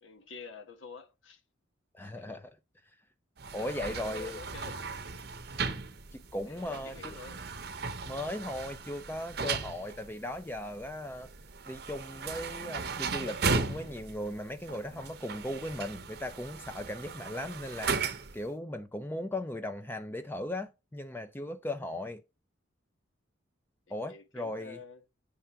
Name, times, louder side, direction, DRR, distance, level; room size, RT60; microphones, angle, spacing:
voice 1, 0.0-1.4 2.0-2.4 3.5-4.8 6.5-7.4 23.9-25.0, left 4 dB, 80° left, 1.2 m, -48 dB
voice 2, 1.9-2.5 3.5-4.4 6.1-7.2 8.0-11.3 11.7-17.9 18.3-22.2 23.9-24.8, left 1 dB, 10° left, 0.4 m, -37 dB
sound 1, 3.4-18.5, right 4 dB, 55° right, 0.8 m, -37 dB
8.4 x 3.3 x 5.6 m
head